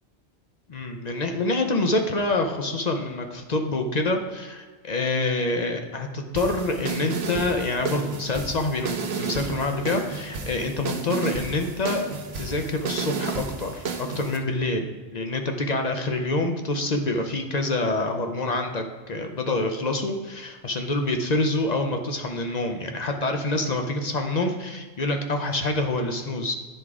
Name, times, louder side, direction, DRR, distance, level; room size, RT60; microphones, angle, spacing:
voice 1, 0.7-12.0 12.3-14.9 15.1-26.5, left 2 dB, 45° left, 5 dB, 0.7 m, -26 dB
sound 1, 6.4-14.4, right 5 dB, 70° right, 1.0 m, -32 dB
10.0 x 3.7 x 4.7 m, 1.4 s
omnidirectional pair, 1.1 m